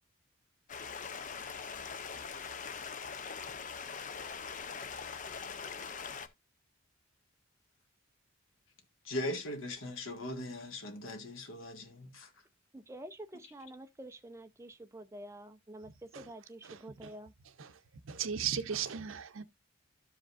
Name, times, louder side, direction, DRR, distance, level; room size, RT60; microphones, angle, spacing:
Stream, 0.7-6.3, left 6 dB, 40° left, 0.6 m, -42 dB
voice 1, 9.0-12.3, left 1 dB, 85° left, 1.6 m, -39 dB
voice 2, 12.7-17.3, right 1 dB, 15° right, 0.6 m, -48 dB
voice 3, 16.7-17.1 17.6-17.7 18.1-19.4, right 8 dB, 85° right, 0.6 m, -36 dB
13.0 x 5.1 x 2.5 m
head